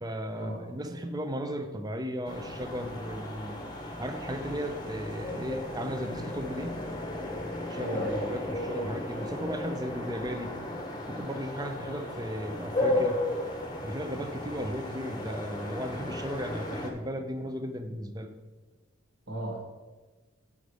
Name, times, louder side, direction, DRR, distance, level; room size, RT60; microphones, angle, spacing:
voice 1, 0.0-3.6 4.0-6.8 7.7-10.5 11.1-13.2 13.8-18.3, equal, 20° right, 7 dB, 0.6 m, -35 dB
sound 1, 2.2-16.9, left 1 dB, 20° left, 0.9 m, -35 dB
voice 2, 7.7-8.2 14.6-14.7 19.3-19.6, right 1 dB, 65° right, -4 dB, 1.8 m, -35 dB
8.5 x 5.2 x 4.8 m, 1.2 s
head